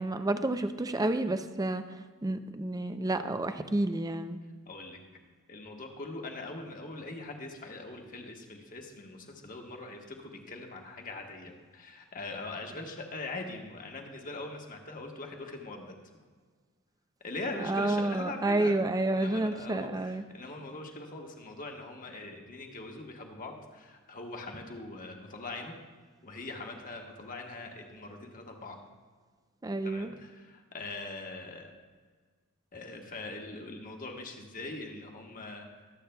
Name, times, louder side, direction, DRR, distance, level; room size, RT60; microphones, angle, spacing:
voice 1, 0.0-1.8 2.2-4.4 17.7-20.2 29.6-30.1, right 2 dB, 15° right, 9 dB, 0.5 m, -30 dB
voice 2, 4.6-5.0 5.5-15.9 17.2-18.8 19.1-25.7 26.2-28.8 29.8-31.7 32.7-35.7, left 2 dB, 40° left, 2 dB, 1.3 m, -42 dB
22.5 x 8.3 x 2.2 m, 1.5 s
head